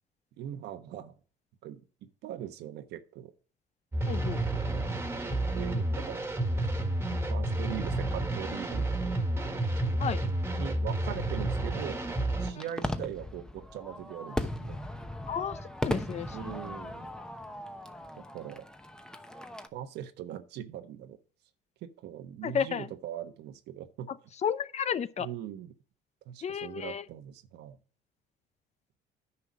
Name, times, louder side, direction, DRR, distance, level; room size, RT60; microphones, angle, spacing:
voice 1, 0.4-1.2 1.6-3.3 4.2-5.0 5.5-6.2 7.3-9.2 10.6-12.0 12.4-14.8 16.3-17.1 18.1-18.7 19.7-21.2 21.8-24.1 25.2-25.7 26.3-27.8, right 11 dB, 80° right, 1.2 m, -41 dB
sound 1, 3.9-12.5, right 1 dB, 15° right, 1.7 m, -30 dB
voice 2, 4.1-4.4 10.0-10.2 12.6-12.7 15.3-16.6 22.4-22.9 24.1-24.2 24.4-25.3 26.4-27.0, left 8 dB, 40° left, 0.6 m, -32 dB
Fireworks, 11.3-19.7, left 1 dB, 5° left, 0.9 m, -38 dB
9.8 x 5.8 x 4.9 m
cardioid pair, 110°, 17 cm